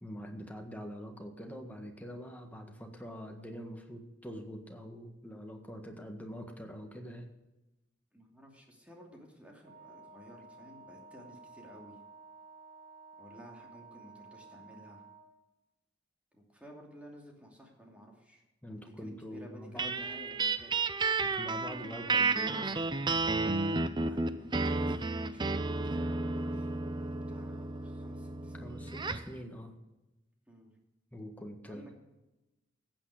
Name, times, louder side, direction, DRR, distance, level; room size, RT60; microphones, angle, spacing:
voice 1, 0.0-7.3 18.6-20.0 21.2-22.9 28.6-29.7 31.1-31.8, equal, 10° left, 3 dB, 1.6 m, -44 dB
voice 2, 8.1-12.0 13.2-15.0 16.3-18.4 18.7-20.8 24.0-28.7 30.5-30.7 31.6-31.9, equal, 5° right, -1 dB, 2.7 m, -53 dB
Wind instrument woodwind instrument, 9.6-15.4, right 4 dB, 50° right, 2.4 m, -53 dB
sound 1, 19.8-29.3, right 3 dB, 25° right, 0.5 m, -32 dB
14.5 x 8.9 x 4.9 m, 1.0 s
head